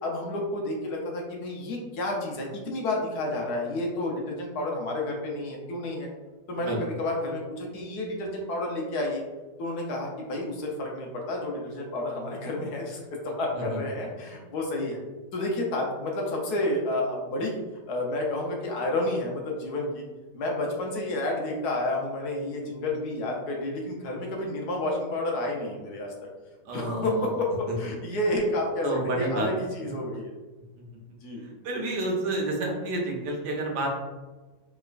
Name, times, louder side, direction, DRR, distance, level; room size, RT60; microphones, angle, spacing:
voice 1, 0.0-6.1 6.5-9.2 9.6-15.0 15.3-17.6 17.9-20.0 20.3-26.1 26.7-30.3 31.2-31.4, left 1 dB, 75° left, 0 dB, 1.2 m, -30 dB
voice 2, 26.6-27.3 28.8-29.5 30.8-30.9 31.4-33.9, right 2 dB, 90° right, -1 dB, 1.4 m, -29 dB
3.5 x 3.0 x 2.4 m, 1.2 s
omnidirectional pair, 1.7 m